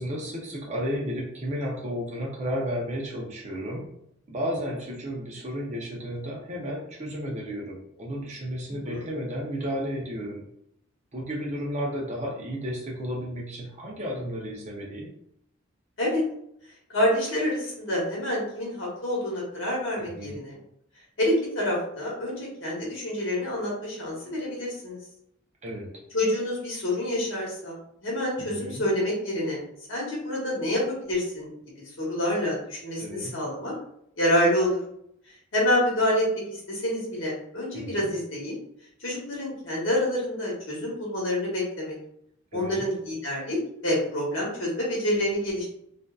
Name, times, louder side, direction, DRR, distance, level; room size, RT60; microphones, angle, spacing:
voice 1, 0.0-3.9 4.3-10.5 11.1-15.1 20.0-20.4 25.6-25.9 28.4-28.8 33.0-33.3 37.7-38.1 42.5-42.8, equal, 35° right, -2 dB, 0.5 m, -33 dB
voice 2, 16.9-20.6 21.2-25.0 26.1-29.6 29.9-31.5 32.0-33.7 34.2-34.8 35.5-38.5 39.0-42.0 42.5-45.7, left 1 dB, 80° left, -4 dB, 1.0 m, -27 dB
2.5 x 2.3 x 2.3 m, 0.74 s
head